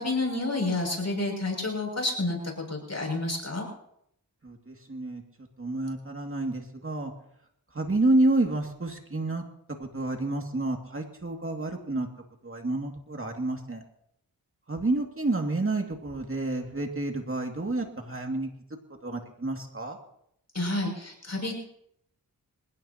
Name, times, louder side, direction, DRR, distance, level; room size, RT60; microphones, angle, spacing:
voice 1, 0.0-3.7 20.5-21.5, left 2 dB, 45° left, 1 dB, 6.7 m, -29 dB
voice 2, 4.4-5.2 5.6-7.1 7.7-9.4 9.8-12.1 12.4-13.8 14.7-18.5 19.0-20.0, right 2 dB, 35° right, 2 dB, 2.3 m, -29 dB
28.0 x 16.5 x 2.9 m, 0.73 s
wide cardioid pair, 65°, 36 cm